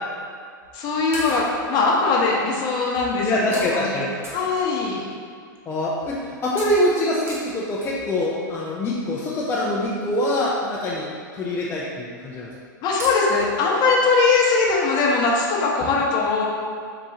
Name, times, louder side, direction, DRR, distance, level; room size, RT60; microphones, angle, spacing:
sound 1, 0.6-0.8 1.1-1.7 2.4-2.5 3.0-3.2 3.5-3.8 4.2-5.1 5.5-5.6 6.0-6.2 6.6-8.4 9.4-9.5 10.1-10.2 10.4-10.7 11.0-11.1 11.4-11.5 12.2-12.5 13.0-13.7 14.2-14.3 14.6-14.7, right 1 dB, 20° right, 1.0 m, -38 dB
voice 1, 0.7-4.0 4.3-5.0 12.8-16.4, left 4 dB, 40° left, -2 dB, 0.9 m, -21 dB
voice 2, 3.2-4.1 5.7-12.5, left 1 dB, 20° left, -5 dB, 0.5 m, -24 dB
4.0 x 3.0 x 3.7 m, 2.1 s
hypercardioid pair, 115°, 11 cm